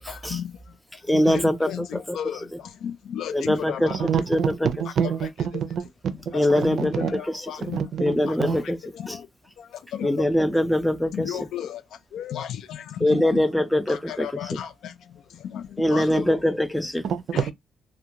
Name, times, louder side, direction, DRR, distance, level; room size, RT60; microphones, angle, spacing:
voice 1, 0.1-0.5 1.1-2.5 2.8-4.1 5.0-5.3 6.3-7.8 8.3-8.4 8.9-9.2 9.9-10.1 11.1-11.8 12.1-13.4 13.9-14.9 15.5-15.6 15.9-16.4 17.3-17.5, left 10 dB, 75° left, 0.3 m, -33 dB
voice 2, 1.1-1.7 2.1-2.2 3.3-3.9 4.3-4.9 6.3-7.0 8.0-8.8 9.1-9.2 10.0-11.3 13.0-14.3 15.8-17.0, left 1 dB, 5° left, 0.4 m, -22 dB
voice 3, 4.0-5.8 6.3-7.1 7.7-8.1 8.4-8.6 17.0-17.5, right 7 dB, 65° right, 0.4 m, -27 dB
2.4 x 2.2 x 2.8 m
cardioid pair, 90°, 0 cm